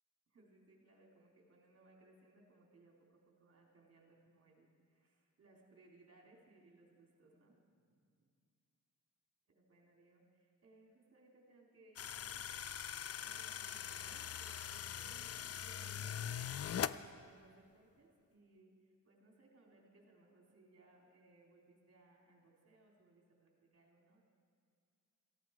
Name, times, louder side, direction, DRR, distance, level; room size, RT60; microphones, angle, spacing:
voice 1, 0.3-7.6 7.8-8.3 9.5-12.5 13.2-24.2, right 2 dB, 50° right, -1 dB, 3.7 m, -66 dB
sound 1, 12.0-17.0, left 9 dB, 50° left, 0.4 m, -42 dB
18.0 x 15.0 x 4.8 m, 2.2 s
wide cardioid pair, 115°, 32 cm